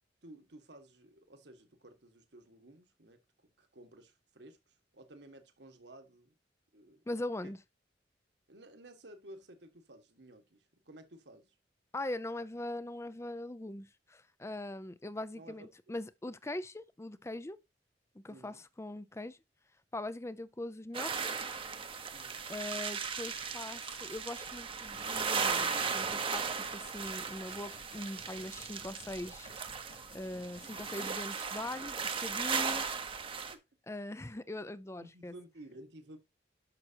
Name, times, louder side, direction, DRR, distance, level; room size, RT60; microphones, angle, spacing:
voice 1, 0.2-6.4 6.7-7.0 7.4-7.5 8.5-11.6 15.3-15.9 18.3-18.6 22.1-22.5 32.5-32.8 33.5-33.6 35.0-36.2, right 1 dB, 65° right, 1.7 m, -54 dB
voice 2, 7.1-7.6 11.9-17.6 18.1-19.4 19.9-21.5 22.5-29.5 30.1-32.8 33.9-35.3, left 1 dB, 15° left, 0.5 m, -41 dB
sound 1, 20.9-33.6, right 5 dB, 30° right, 0.9 m, -37 dB
sound 2, 24.8-31.1, left 3 dB, 75° left, 4.6 m, -57 dB
10.5 x 6.4 x 2.9 m
head